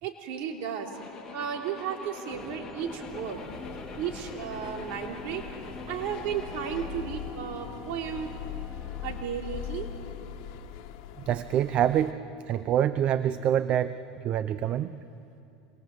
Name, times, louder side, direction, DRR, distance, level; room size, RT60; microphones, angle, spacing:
voice 1, 0.0-0.9 1.3-3.4 4.0-5.4 5.9-8.3 9.0-9.9, right 8 dB, 60° right, 2 dB, 3.6 m, -34 dB
sound 1, 0.9-6.9, left 5 dB, 25° left, 3.6 m, -46 dB
sound 2, 2.3-9.3, left 1 dB, 5° right, 1.4 m, -46 dB
sound 3, 3.1-12.1, left 10 dB, 60° left, 1.7 m, -41 dB
voice 2, 11.3-12.2 12.5-14.0 14.2-14.9, right 10 dB, 45° right, 14 dB, 0.7 m, -25 dB
27.0 x 22.0 x 8.0 m, 2.8 s
hypercardioid pair, 100°, 3 cm